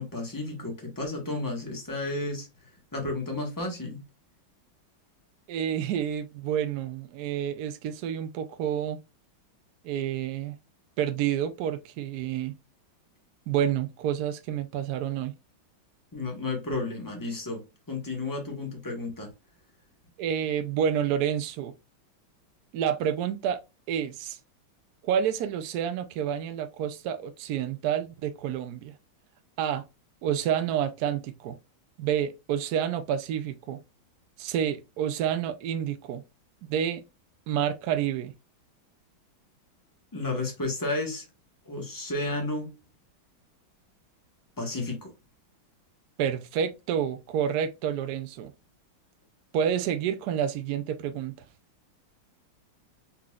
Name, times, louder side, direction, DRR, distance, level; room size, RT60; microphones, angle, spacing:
voice 1, 0.0-2.5 2.9-4.0 16.1-19.3 40.1-41.2 41.6-42.8 44.6-45.1, left 2 dB, 15° left, 0.9 m, -32 dB
voice 2, 5.5-9.0 9.8-10.5 11.0-12.6 13.5-15.3 20.2-21.7 22.7-23.6 23.9-24.4 25.0-28.9 29.6-29.8 30.2-31.6 32.0-33.8 34.4-36.2 36.7-37.0 37.5-38.3 46.2-48.5 49.5-51.3, right 9 dB, 80° right, 0.8 m, -29 dB
4.3 x 3.9 x 2.3 m
omnidirectional pair, 2.2 m